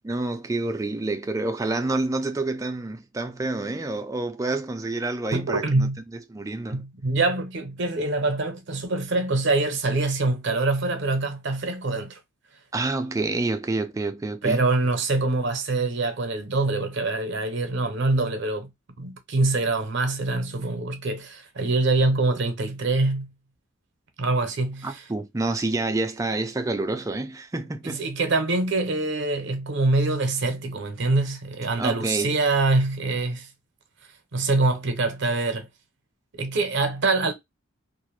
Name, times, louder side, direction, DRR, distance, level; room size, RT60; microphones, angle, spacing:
voice 1, 0.0-6.8 12.7-14.6 24.8-28.0 31.8-32.4, right 2 dB, 15° right, 0.3 m, -28 dB
voice 2, 5.3-6.0 6.7-12.2 14.4-18.7 19.0-23.3 24.2-25.0 27.8-33.5 34.3-35.7 36.4-37.3, right 2 dB, 60° right, 0.6 m, -24 dB
2.4 x 2.1 x 3.0 m
head